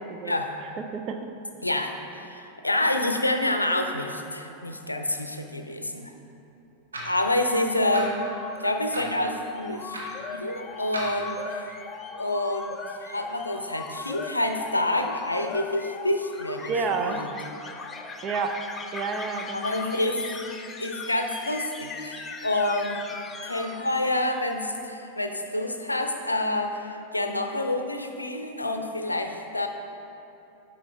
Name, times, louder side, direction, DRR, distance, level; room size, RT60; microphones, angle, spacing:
voice 1, 0.8-1.3 16.7-17.2 18.2-18.7 18.9-19.6, right 5 dB, 35° right, 6 dB, 0.5 m, -29 dB
voice 2, 1.6-6.1 7.0-8.2 8.6-11.7 12.2-16.7 17.0-17.2 19.5-20.3 20.8-23.0 23.4-29.7, left 1 dB, 85° left, 5 dB, 0.5 m, -28 dB
sound 1, 6.9-7.2 7.9-8.1 8.9-9.2 9.9-10.1 10.9-11.1, right 2 dB, 75° right, 1.4 m, -34 dB
sound 2, 7.9-24.5, left 4 dB, 20° left, 0.5 m, -39 dB
9.6 x 6.3 x 3.4 m, 2.9 s
figure-of-eight pair, 90°, 0 cm